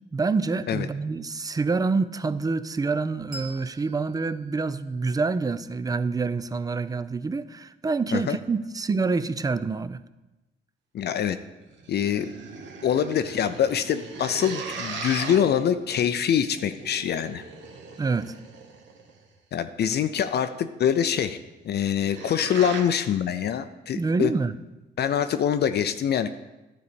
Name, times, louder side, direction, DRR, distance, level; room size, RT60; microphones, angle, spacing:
voice 1, 0.1-10.0 18.0-18.4 23.9-24.5, right 4 dB, 20° right, 15 dB, 0.4 m, -27 dB
Bell, 3.3-6.4, right 2 dB, 45° right, 1.4 m, -48 dB
voice 2, 10.9-11.4 11.9-12.3 12.8-17.4 19.5-21.4 21.6-24.3 25.0-26.3, left 9 dB, 55° left, 10 dB, 0.5 m, -24 dB
sound 1, 11.6-19.2 21.6-22.8, right 4 dB, 70° right, 1.3 m, -39 dB
11.5 x 4.0 x 6.8 m, 1.0 s
cardioid pair, 90°, 20 cm